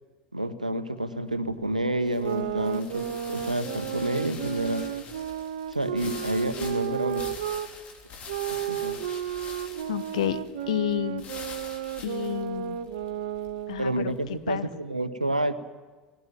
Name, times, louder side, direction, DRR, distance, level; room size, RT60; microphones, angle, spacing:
voice 1, 0.3-4.8 5.7-7.2 8.5-9.0 13.8-15.5, right 1 dB, 90° right, 12 dB, 1.0 m, -29 dB
sound 1, 1.1-14.4, left 5 dB, 35° left, 3.7 m, -45 dB
sound 2, 2.1-7.7 8.3-13.9, right 11 dB, 65° right, 1.0 m, -33 dB
voice 2, 9.9-10.4 10.7-11.2 12.0-12.9 13.7-14.1 14.5-14.7, left 12 dB, 65° left, 12 dB, 1.1 m, -30 dB
19.0 x 18.0 x 9.3 m, 1.3 s
figure-of-eight pair, 75°, 4 cm